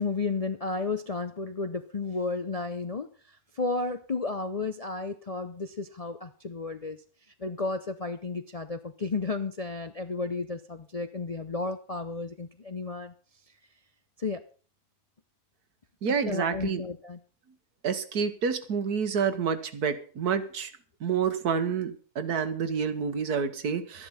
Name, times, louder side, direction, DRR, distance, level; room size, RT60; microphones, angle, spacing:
voice 1, 0.0-7.0 7.4-13.1 14.2-14.4 16.3-17.2, left 3 dB, 45° left, 9 dB, 0.5 m, -33 dB
voice 2, 16.0-16.8 17.8-20.7 21.0-24.1, right 6 dB, 80° right, 11 dB, 1.8 m, -28 dB
12.5 x 11.0 x 5.6 m, 0.40 s
omnidirectional pair, 1.6 m